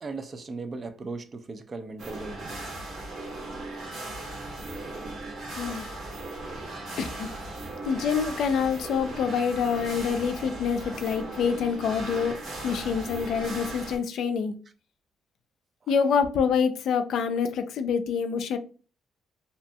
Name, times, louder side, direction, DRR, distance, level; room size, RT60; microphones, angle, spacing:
voice 1, 0.0-2.6 5.6-5.9 15.8-15.9, right 3 dB, 40° right, 0.4 m, -38 dB
sound 1, 2.0-14.0, right 2 dB, 70° right, 1.2 m, -37 dB
voice 2, 5.6-5.9 7.0-7.3 7.9-12.4 12.6-14.5 15.9-18.6, left 6 dB, 75° left, 0.3 m, -26 dB
2.6 x 2.2 x 2.6 m
cardioid pair, 90°, 0 cm